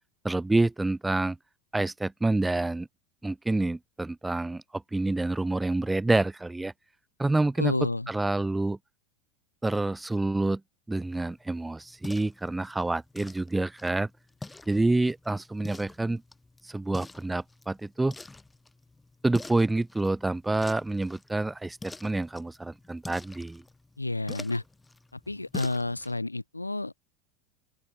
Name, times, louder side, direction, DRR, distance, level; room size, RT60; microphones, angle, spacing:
voice 1, 0.2-1.4 1.7-2.9 3.2-6.7 7.2-8.8 9.6-10.6 10.9-14.1 14.7-16.2 16.6-18.2 19.2-23.6, right 2 dB, 10° right, 0.7 m, -28 dB
voice 2, 7.6-8.1 24.0-24.6 25.3-27.0, left 2 dB, 85° left, 2.1 m, -30 dB
sound 1, 11.0-26.2, left 2 dB, 10° left, 6.0 m, -47 dB
open air
figure-of-eight pair, 80°, 0 cm